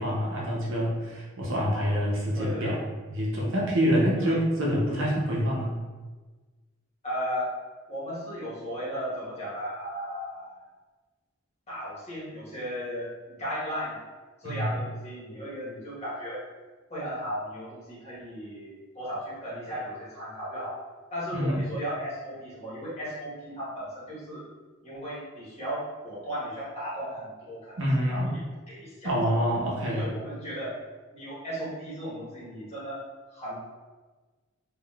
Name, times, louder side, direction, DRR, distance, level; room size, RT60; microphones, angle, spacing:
voice 1, 0.0-2.8 3.1-5.7 14.4-14.7 21.3-21.6 27.8-28.3 29.0-30.1, equal, 65° right, -4 dB, 0.7 m, -26 dB
voice 2, 2.3-2.8 4.2-4.4 7.0-7.5 7.9-10.6 11.7-14.0 14.4-16.4 16.9-20.8 21.1-24.4 24.8-29.1 29.9-30.7 31.1-33.0 33.3-33.6, equal, 30° left, -8 dB, 1.2 m, -35 dB
3.6 x 2.3 x 2.3 m, 1.3 s
head